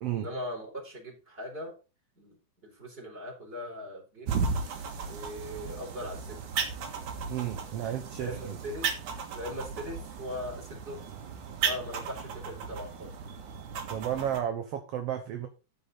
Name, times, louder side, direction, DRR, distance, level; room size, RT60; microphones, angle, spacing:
voice 1, 0.1-1.8 2.2-2.4 2.6-4.5 5.0-6.5 7.8-7.9 8.2-8.9 9.3-11.0 11.6-13.1, left 1 dB, 20° right, 4.4 m, -40 dB
sound 1, 4.3-14.4, right 5 dB, 85° right, 3.0 m, -35 dB
voice 2, 7.3-8.6 13.9-15.5, right 10 dB, 65° right, 1.9 m, -33 dB
13.0 x 5.7 x 4.0 m
omnidirectional pair, 3.3 m